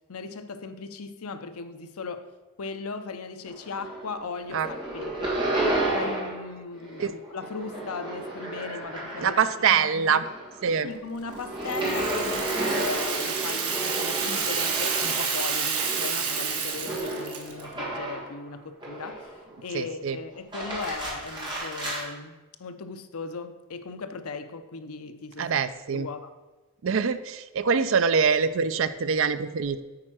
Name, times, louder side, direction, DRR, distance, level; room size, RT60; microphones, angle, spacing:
voice 1, 0.1-2.3 2.6-5.5 5.9-9.4 9.7-10.3 10.8-25.5 25.9-26.3, left 4 dB, 80° left, 0.7 m, -37 dB
sound 1, 3.5-4.2 4.5-6.5 6.8-9.6 10.0-18.3 18.8-19.5 20.3-22.0, right 1 dB, 20° right, 2.1 m, -32 dB
voice 2, 9.2-10.2 10.6-10.9 19.7-20.2 25.4-26.1 26.8-29.8, right 6 dB, 60° right, 0.4 m, -24 dB
Rattle (instrument), 11.7-17.6, right 6 dB, 80° right, 1.3 m, -29 dB
8.8 x 4.4 x 6.2 m
head